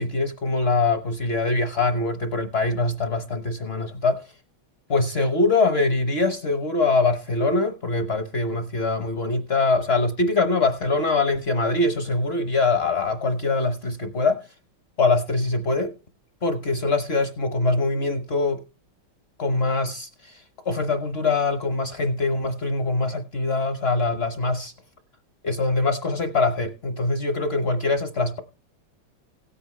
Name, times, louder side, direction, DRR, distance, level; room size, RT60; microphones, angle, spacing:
voice 1, 0.0-4.3 4.9-14.5 15.0-15.9 16.4-18.6 19.4-24.7 25.4-28.4, left 3 dB, 45° left, 0.8 m, -23 dB
17.0 x 8.5 x 3.1 m
omnidirectional pair, 2.3 m